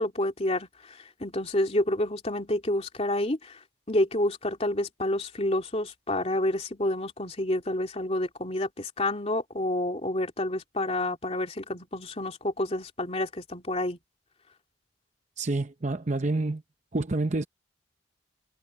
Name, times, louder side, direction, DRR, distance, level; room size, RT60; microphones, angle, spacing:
voice 1, 0.0-3.6 3.9-14.0, left 1 dB, 35° left, 2.8 m, -29 dB
voice 2, 15.4-16.6 16.9-17.5, right 2 dB, 40° right, 0.7 m, -28 dB
head